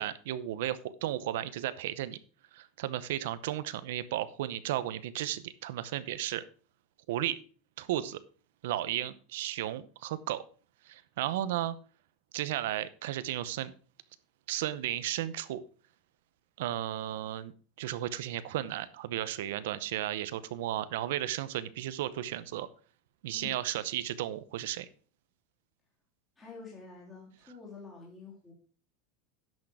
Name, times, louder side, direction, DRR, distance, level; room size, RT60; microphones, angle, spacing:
voice 1, 0.0-2.2 2.5-6.4 7.1-7.4 7.8-8.2 8.6-10.4 10.9-11.8 12.3-13.7 14.5-15.6 16.6-17.5 17.8-22.7 23.2-24.9, right 13 dB, 70° right, 15 dB, 0.7 m, -34 dB
voice 2, 26.4-28.5, left 4 dB, 15° left, -4 dB, 3.1 m, -48 dB
10.5 x 6.4 x 4.9 m, 0.38 s
supercardioid pair, 170°, 0 cm